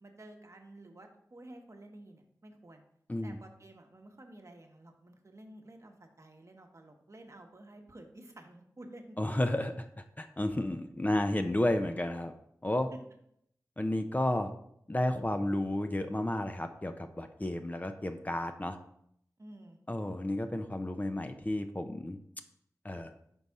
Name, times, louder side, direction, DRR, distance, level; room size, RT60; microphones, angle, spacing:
voice 1, 0.0-2.8 3.2-9.2 19.4-19.8, right 1 dB, 45° right, 3 dB, 1.0 m, -52 dB
voice 2, 9.2-9.9 10.2-12.3 12.6-12.9 13.8-14.5 14.9-18.8 19.9-22.2 22.8-23.1, left 1 dB, 25° left, 7 dB, 0.5 m, -32 dB
5.4 x 4.0 x 4.7 m, 0.72 s
cardioid pair, 45°, 7 cm